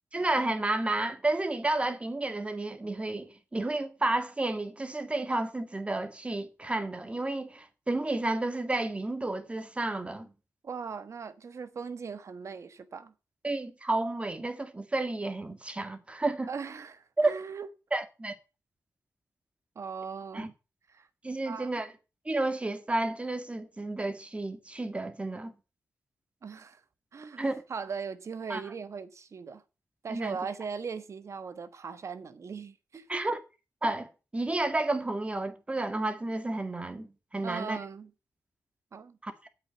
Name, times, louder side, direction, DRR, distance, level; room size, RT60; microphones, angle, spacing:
voice 1, 0.1-10.3 13.4-16.5 17.2-17.3 17.9-18.4 20.3-20.5 21.2-21.9 22.3-25.5 27.4-27.6 28.5-28.6 30.1-30.4 33.1-33.4 33.8-37.8 39.2-39.5, right 2 dB, 20° right, 1.9 m, -31 dB
voice 2, 10.6-13.1 16.5-17.7 19.7-20.5 20.9-21.1 21.5-21.7 26.4-26.8 27.1-27.4 27.7-29.6 30.0-33.1 37.4-38.1 38.9-39.2, right 5 dB, 55° right, 1.3 m, -39 dB
9.7 x 8.1 x 6.9 m
wide cardioid pair, 100°, 6 cm